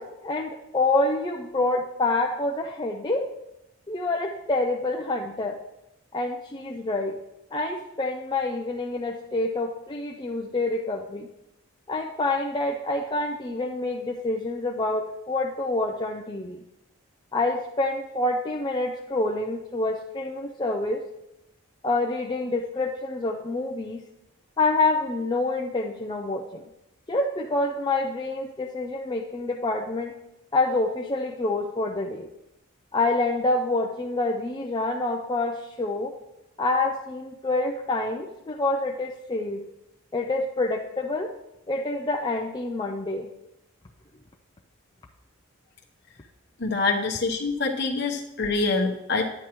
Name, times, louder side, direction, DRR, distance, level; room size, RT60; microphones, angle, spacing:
voice 1, 0.0-3.3 3.9-5.6 6.1-7.2 7.5-11.3 11.9-16.6 17.3-21.0 21.8-24.0 24.6-26.6 27.1-30.1 30.5-32.3 32.9-36.1 36.6-39.6 40.1-41.3 41.7-43.3, left 2 dB, 20° left, -1 dB, 0.4 m, -27 dB
voice 2, 46.6-49.3, left 3 dB, 50° left, 1 dB, 1.0 m, -25 dB
10.5 x 8.6 x 3.0 m, 0.87 s
head